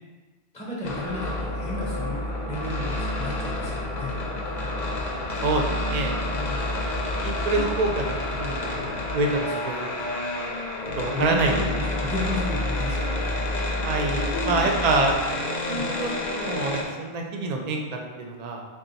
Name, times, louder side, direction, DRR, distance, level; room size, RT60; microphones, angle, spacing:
voice 1, 0.5-4.2 6.3-6.7 7.2-7.3 7.5-7.6 11.1-13.3 14.1-15.0 15.7-15.9, left 1 dB, 10° left, -5 dB, 0.5 m, -33 dB
sound 1, 0.8-16.8, left 1 dB, 50° left, 0.6 m, -29 dB
voice 2, 6.6-6.9 7.2-8.0 8.3-9.8 10.2-10.3 11.0-11.6 13.8-15.1 15.7-17.8 18.2-18.6, right 3 dB, 55° right, 2 dB, 0.4 m, -26 dB
3.7 x 2.3 x 3.9 m, 1.3 s
omnidirectional pair, 1.1 m